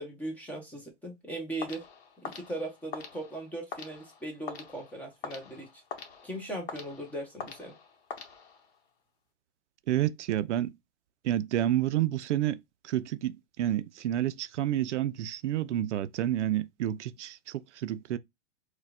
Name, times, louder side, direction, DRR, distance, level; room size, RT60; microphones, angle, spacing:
voice 1, 0.0-1.8 2.2-5.7 6.2-7.8, right 1 dB, 5° left, 0.5 m, -38 dB
sound 1, 1.6-8.9, left 6 dB, 60° left, 1.1 m, -44 dB
voice 2, 9.9-10.7 11.2-12.6 12.8-18.2, right 12 dB, 70° right, 0.5 m, -29 dB
4.3 x 2.2 x 2.3 m
hypercardioid pair, 135°, 36 cm